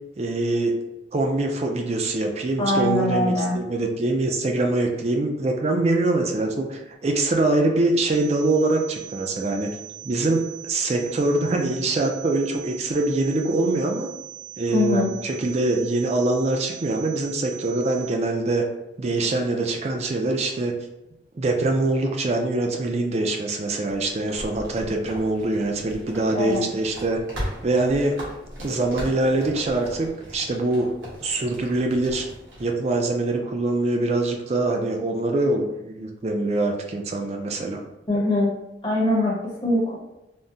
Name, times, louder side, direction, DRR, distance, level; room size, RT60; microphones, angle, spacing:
voice 1, 0.2-0.7 1.1-9.7 10.0-14.1 14.6-18.6 19.0-20.8 21.3-27.2 27.6-28.1 28.6-30.9 31.2-32.2 32.6-37.8, right 2 dB, 35° right, 3 dB, 0.4 m, -24 dB
voice 2, 2.6-3.6 14.7-15.1 26.3-26.7 38.1-38.5 38.8-39.9, left 1 dB, 25° left, -4 dB, 0.8 m, -22 dB
sound 1, 8.1-18.1, right 10 dB, 70° right, 0.8 m, -41 dB
sound 2, 23.9-32.7, equal, 90° right, 1.1 m, -38 dB
3.5 x 2.0 x 2.7 m, 0.93 s
head